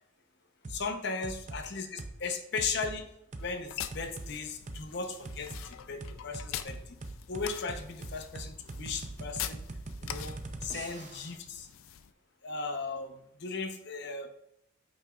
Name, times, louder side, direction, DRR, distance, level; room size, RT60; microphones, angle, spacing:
sound 1, 0.6-0.8 1.2-1.6 2.0-2.2 2.6-3.0 3.3-3.5 3.9-4.3 4.7-4.8 5.2-5.6 6.0-11.3, right 2 dB, 35° right, 0.5 m, -41 dB
voice 1, 0.7-3.1 3.4-7.0 7.3-9.6 10.0-10.3 10.6-11.7 12.4-14.3, left 4 dB, 55° left, 6 dB, 0.8 m, -37 dB
sound 2, 3.4-12.1, left 10 dB, 90° left, 0.4 m, -44 dB
8.9 x 5.3 x 2.4 m, 0.78 s
head